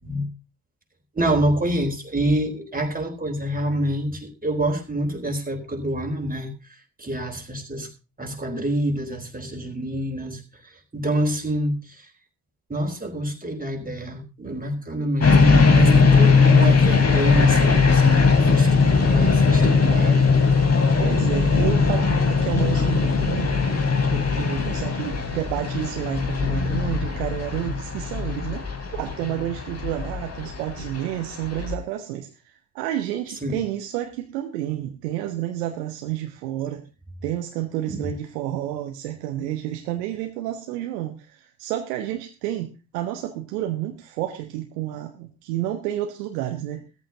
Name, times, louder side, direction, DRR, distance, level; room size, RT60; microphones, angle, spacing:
voice 1, 1.2-6.5 7.0-7.9 8.2-10.4 10.9-11.8 12.7-18.8 19.1-20.4 33.4-33.6 37.9-38.1, right 1 dB, 15° right, 2 dB, 3.9 m, -26 dB
sound 1, 15.2-31.7, left 4 dB, 30° left, 2.9 m, -19 dB
voice 2, 21.0-23.6 24.1-36.8 37.2-46.8, right 12 dB, 70° right, 5 dB, 1.2 m, -30 dB
17.5 x 14.0 x 2.8 m, 0.29 s
figure-of-eight pair, 45°, 49 cm